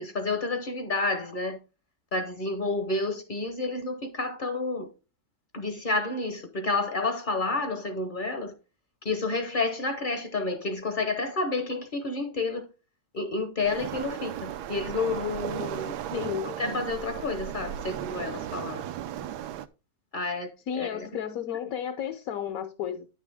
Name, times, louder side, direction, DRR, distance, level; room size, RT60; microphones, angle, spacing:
voice 1, 0.0-1.6 2.1-4.9 5.5-8.5 9.0-12.7 13.1-15.9 16.4-18.8 20.1-21.1, left 3 dB, 40° left, 0.7 m, -30 dB
Waves surf, 13.6-19.7, right 11 dB, 75° right, 1.1 m, -36 dB
voice 2, 16.1-16.5 20.7-23.2, left 9 dB, 65° left, 1.0 m, -32 dB
9.7 x 6.1 x 3.4 m
omnidirectional pair, 1.8 m